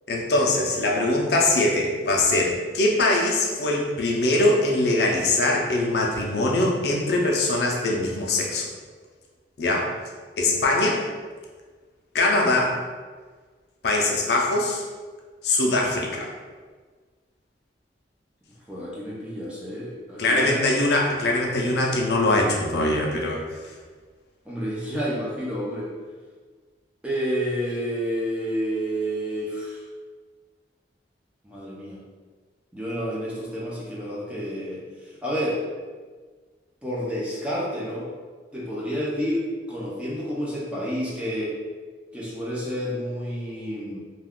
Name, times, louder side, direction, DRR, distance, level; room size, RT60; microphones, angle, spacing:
voice 1, 0.1-8.6 9.6-9.9 10.4-11.0 12.1-12.8 13.8-14.8 15.4-16.3 20.2-23.4, left 2 dB, 65° left, -1 dB, 0.5 m, -22 dB
voice 2, 18.7-20.6 24.5-25.9 27.0-29.8 31.4-32.0 32.7-35.6 36.8-38.1 38.5-41.5 42.1-44.0, equal, 5° right, -6 dB, 0.5 m, -29 dB
2.3 x 2.3 x 3.5 m, 1.5 s
head